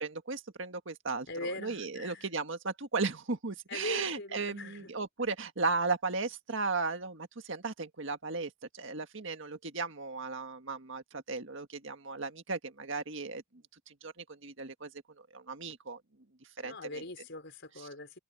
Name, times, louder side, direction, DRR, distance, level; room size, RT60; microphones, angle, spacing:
voice 1, 0.0-13.4 13.9-14.9 15.3-16.0 16.6-17.0, right 4 dB, 60° right, 1.8 m, -36 dB
voice 2, 1.3-2.3 3.7-4.9 16.6-18.2, left 2 dB, 55° left, 5.6 m, -41 dB
head